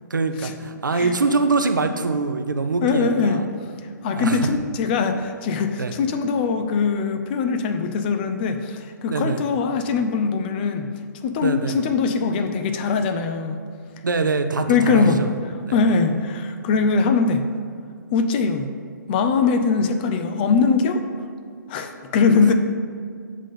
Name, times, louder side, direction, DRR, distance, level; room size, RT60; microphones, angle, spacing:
voice 1, 0.1-3.5 4.1-4.5 5.8-5.9 9.1-9.4 11.4-11.8 14.0-15.3, right 3 dB, 75° right, 7 dB, 0.6 m, -23 dB
voice 2, 2.8-3.4 4.0-10.9 11.2-13.6 14.7-17.4 18.1-18.7 19.1-21.0 21.7-22.5, left 5 dB, 30° left, 7 dB, 0.4 m, -21 dB
7.3 x 3.7 x 5.4 m, 2.1 s
figure-of-eight pair, 125°, 11 cm